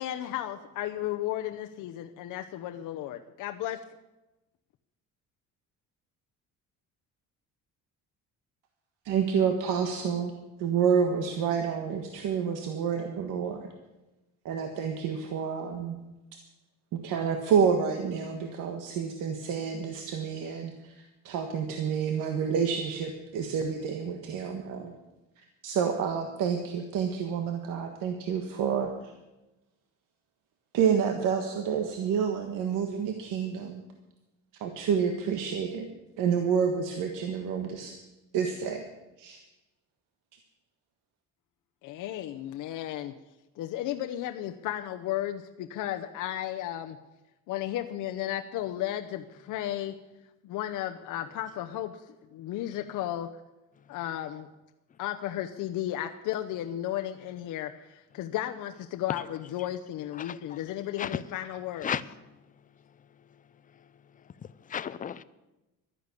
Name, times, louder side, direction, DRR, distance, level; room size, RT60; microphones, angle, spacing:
voice 1, 0.0-3.8 41.8-43.1 43.6-47.0 47.5-49.9 50.4-52.0 52.3-53.3 53.9-54.5 55.0-61.9, left 12 dB, 75° left, 5 dB, 0.8 m, -34 dB
voice 2, 9.0-10.3 10.6-13.7 14.4-16.0 16.9-24.9 25.6-28.9 30.7-33.8 34.6-35.9 36.2-37.9 38.3-38.8 39.2-39.4, right 7 dB, 90° right, 4 dB, 1.5 m, -29 dB
voice 3, 60.1-60.6 61.0-61.2 61.8-62.0 64.4-65.2, left 8 dB, 25° left, 16 dB, 0.4 m, -34 dB
12.0 x 10.5 x 8.3 m, 1.0 s
cardioid pair, 170°, 31 cm